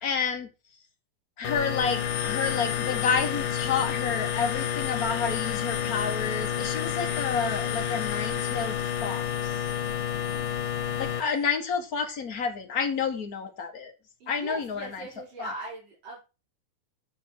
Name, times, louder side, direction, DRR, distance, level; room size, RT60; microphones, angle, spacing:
voice 1, 0.0-0.5 1.4-9.6 11.0-13.9 14.3-14.9 15.4-15.5, left 5 dB, 45° left, 1.2 m, -30 dB
sound 1, 1.5-11.2, left 9 dB, 90° left, 2.9 m, -29 dB
voice 2, 10.1-10.8 14.2-16.2, right 2 dB, 85° right, 6.4 m, -41 dB
8.4 x 8.2 x 4.6 m
omnidirectional pair, 3.7 m